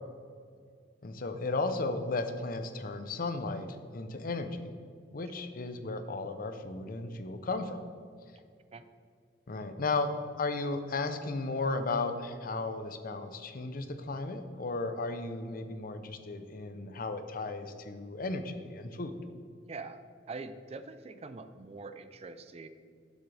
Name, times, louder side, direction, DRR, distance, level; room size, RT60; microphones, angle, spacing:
voice 1, 1.0-4.7 5.1-7.8 9.5-19.1, left 3 dB, 50° left, 8 dB, 0.7 m, -35 dB
voice 2, 19.7-20.0 20.3-22.7, right 3 dB, 35° right, 10 dB, 0.4 m, -44 dB
11.0 x 7.3 x 3.3 m, 2.2 s
head